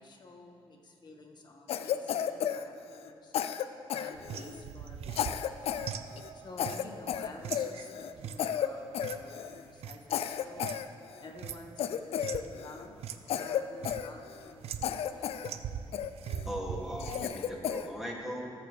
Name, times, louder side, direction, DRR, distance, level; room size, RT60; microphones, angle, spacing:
voice 1, 0.0-3.3 3.9-5.7 6.3-10.7 11.2-12.9 13.2-15.3, left 2 dB, 45° left, 1 dB, 1.7 m, -50 dB
Cough, 1.7-3.1 3.3-4.6 5.1-5.9 6.2-6.3 6.6-8.1 8.4-8.7 8.9-9.6 10.1-11.3 11.8-12.9 13.3-14.5 14.8-15.5 15.9-16.5 17.0-17.9, left 9 dB, 75° left, 0.4 m, -33 dB
sound 1, 4.1-10.9 11.2-12.5 13.0-13.2 13.5-14.1 14.6-15.1 15.4-17.3, right 8 dB, 80° right, 0.5 m, -42 dB
voice 2, 16.4-18.5, equal, 5° right, -3 dB, 2.5 m, -38 dB
20.5 x 6.9 x 3.4 m, 2.4 s
cardioid pair, 80°, 10 cm